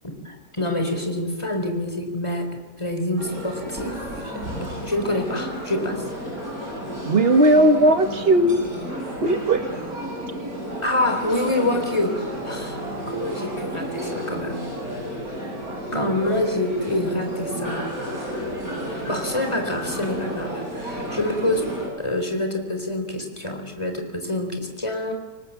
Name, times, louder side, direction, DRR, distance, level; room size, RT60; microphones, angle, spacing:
voice 1, 0.0-6.0 10.8-12.8 13.1-14.6 15.9-17.9 18.2-18.3 18.8-25.1, left 1 dB, 20° left, 5 dB, 4.2 m, -27 dB
sound 1, 3.2-21.9, equal, 65° right, 8.5 m, -32 dB
voice 2, 7.1-8.7 9.2-9.8 15.9-16.2, right 1 dB, 40° right, 8 dB, 1.8 m, -18 dB
28.0 x 24.5 x 7.4 m, 1.2 s
omnidirectional pair, 1.6 m